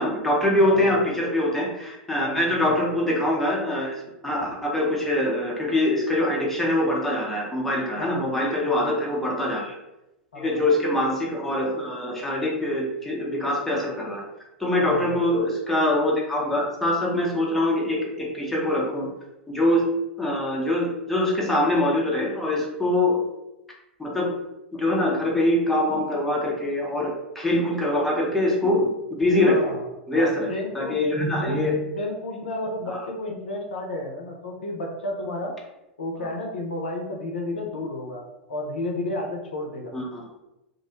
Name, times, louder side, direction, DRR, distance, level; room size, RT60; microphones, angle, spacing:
voice 1, 0.0-3.9 4.2-9.8 10.4-14.2 14.6-19.1 19.5-19.8 20.2-23.2 24.0-24.3 24.7-29.7 30.1-30.5 30.7-31.8 32.9-33.0 36.2-36.3 39.9-40.2, left 1 dB, 5° left, -3 dB, 0.7 m, -24 dB
voice 2, 0.6-0.9 2.2-2.6 8.0-8.3 8.7-8.9 9.2-9.4 10.3-10.6 14.8-15.1 29.4-29.9 30.1-31.0 31.4-31.6 32.0-35.5 36.0-38.2 38.5-39.9, left 2 dB, 70° left, 1 dB, 0.5 m, -32 dB
2.5 x 2.0 x 2.8 m, 0.92 s
figure-of-eight pair, 90°, 6 cm